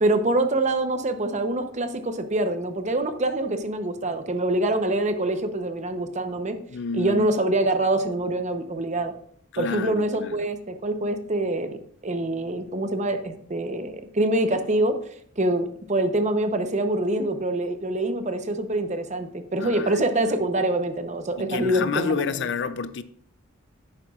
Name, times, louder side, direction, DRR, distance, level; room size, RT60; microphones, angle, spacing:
voice 1, 0.0-6.6 6.9-9.1 9.6-11.8 12.0-15.0 15.4-22.2, right 1 dB, 35° right, 0.7 m, -25 dB
voice 2, 6.7-7.3 9.5-10.4 19.6-20.1 21.4-23.0, left 5 dB, 60° left, 0.5 m, -29 dB
11.0 x 8.9 x 2.4 m
head